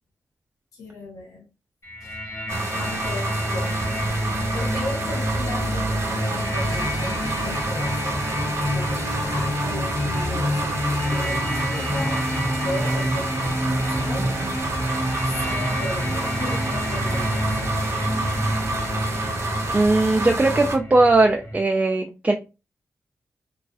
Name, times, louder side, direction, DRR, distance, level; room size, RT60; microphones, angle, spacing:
voice 1, 0.7-1.4 2.0-2.2 2.7-4.0 4.5-8.2 8.7-12.3 12.6-14.3 15.3-17.7, left 2 dB, 80° left, 0.8 m, -36 dB
sound 1, 1.8-21.6, equal, 60° left, 1.1 m, -27 dB
sound 2, 2.5-20.8, right 2 dB, 55° right, 0.9 m, -29 dB
voice 2, 19.7-22.4, right 2 dB, 25° right, 0.4 m, -19 dB
2.4 x 2.3 x 2.3 m
supercardioid pair, 45°, 6 cm